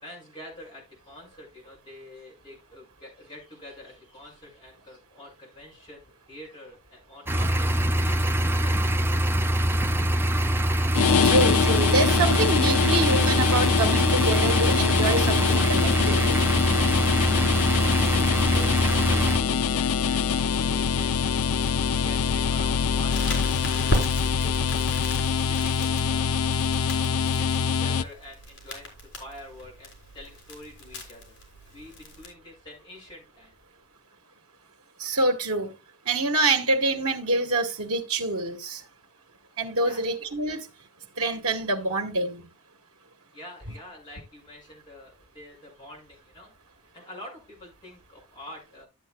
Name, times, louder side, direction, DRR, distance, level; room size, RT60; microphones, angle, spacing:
voice 1, 0.0-8.8 17.8-25.0 25.4-26.4 26.8-31.4 31.7-33.5 39.8-40.1 43.3-46.5 46.9-48.9, left 1 dB, 20° left, 5.5 m, -46 dB
sound 1, 7.3-19.4, right 1 dB, 10° right, 0.4 m, -24 dB
sound 2, 10.9-28.0, left 6 dB, 85° left, 0.5 m, -24 dB
voice 2, 11.2-16.4 35.0-35.7 36.0-38.8 39.6-40.7 41.2-42.5, right 2 dB, 85° right, 1.5 m, -26 dB
Crackle, 23.1-32.3, equal, 55° left, 3.7 m, -35 dB
12.5 x 7.9 x 2.2 m
head